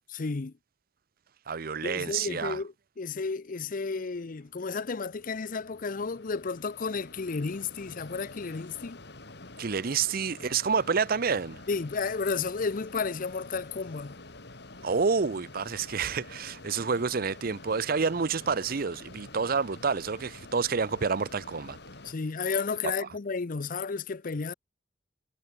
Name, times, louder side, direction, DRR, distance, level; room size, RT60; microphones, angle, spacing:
voice 1, 0.1-0.5 1.8-9.0 11.7-14.2 22.0-24.5, left 4 dB, 50° left, 0.6 m, -32 dB
voice 2, 1.5-2.6 9.6-11.6 14.8-21.8, right 5 dB, 55° right, 0.7 m, -28 dB
Mechanisms, 4.1-22.1, left 2 dB, 65° left, 3.6 m, -48 dB
head